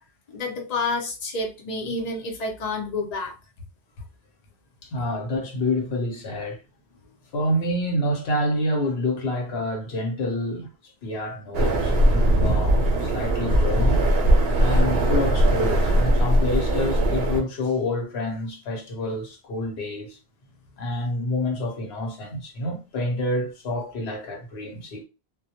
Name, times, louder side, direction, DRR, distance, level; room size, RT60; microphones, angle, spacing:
voice 1, 0.3-3.3, left 3 dB, 45° left, 0.7 m, -29 dB
voice 2, 4.8-6.6 7.3-10.7 11.0-14.0 14.6-20.2 20.8-25.0, left 1 dB, 80° left, 1.0 m, -28 dB
sound 1, 11.5-17.4, right 1 dB, 75° right, 0.8 m, -20 dB
2.1 x 2.1 x 2.8 m
omnidirectional pair, 1.1 m